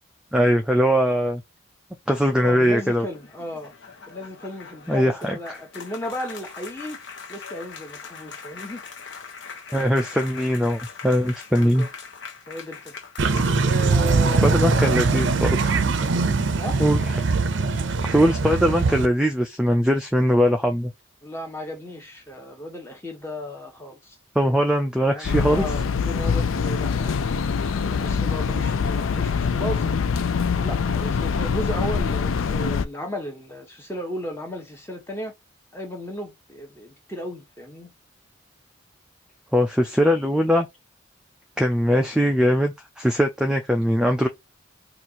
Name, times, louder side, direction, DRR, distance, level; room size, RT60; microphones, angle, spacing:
voice 1, 0.3-1.4 2.1-3.1 4.9-5.6 9.7-11.9 14.4-15.8 16.8-17.0 18.0-20.9 24.4-25.6 39.5-40.7 41.6-44.3, equal, 5° right, 0.3 m, -21 dB
voice 2, 2.4-3.7 4.1-7.0 7.3-8.8 11.5-11.9 12.5-12.9 13.6-15.3 16.5-16.8 21.2-24.2 25.1-30.2 30.6-35.3 35.7-37.9, equal, 10° left, 1.0 m, -35 dB
sound 1, 3.0-14.0, left 5 dB, 60° left, 0.9 m, -41 dB
sound 2, 13.2-19.1, right 4 dB, 60° right, 0.5 m, -21 dB
sound 3, 25.2-32.9, left 5 dB, 75° left, 0.4 m, -24 dB
4.2 x 2.5 x 2.8 m
head